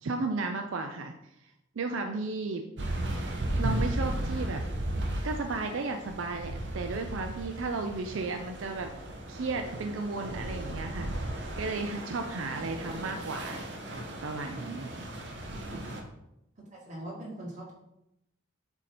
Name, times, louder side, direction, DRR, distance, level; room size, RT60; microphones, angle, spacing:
voice 1, 0.0-1.1 1.8-2.7 3.6-4.6 5.2-8.9 9.3-11.2 11.6-13.6 14.2-14.9 15.7-15.8, right 3 dB, 80° right, 5 dB, 0.5 m, -34 dB
sound 1, 2.8-16.0, right 1 dB, 60° right, 0.9 m, -35 dB
voice 2, 16.6-17.7, right 1 dB, 40° right, -5 dB, 1.9 m, -41 dB
7.9 x 2.8 x 4.2 m, 0.84 s
head